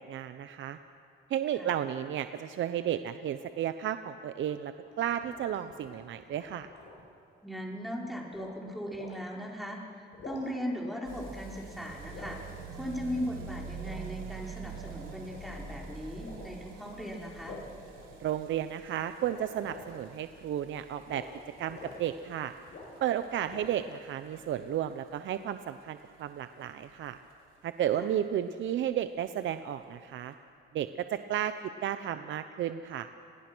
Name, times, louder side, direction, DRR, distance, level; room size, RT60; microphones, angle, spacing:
voice 1, 0.1-0.8 1.3-4.7 5.0-6.7 18.2-21.2 21.6-22.5 23.0-27.2 27.6-30.3 30.7-31.5 31.8-33.1, right 10 dB, 70° right, 10 dB, 0.8 m, -33 dB
sound 1, 4.8-7.1 8.3-8.6 8.9-9.1 10.0-10.7 11.1-11.7 12.1-12.4 13.8-14.1 14.7-15.5 16.2-16.6 17.4-18.6 19.2-20.1 21.1-21.3 21.6-22.0 22.7-23.1 23.5-23.9, left 3 dB, 65° left, 7.9 m, -48 dB
voice 2, 7.4-12.4 12.7-17.6 28.0-28.1, equal, ahead, -2 dB, 5.1 m, -38 dB
sound 2, 11.0-27.8 28.1-28.2 28.4-28.5 28.7-28.8 29.0-29.1 29.8-29.9, right 5 dB, 90° right, 3.5 m, -47 dB
30.0 x 21.0 x 6.3 m, 2.5 s
cardioid pair, 90°, 20 cm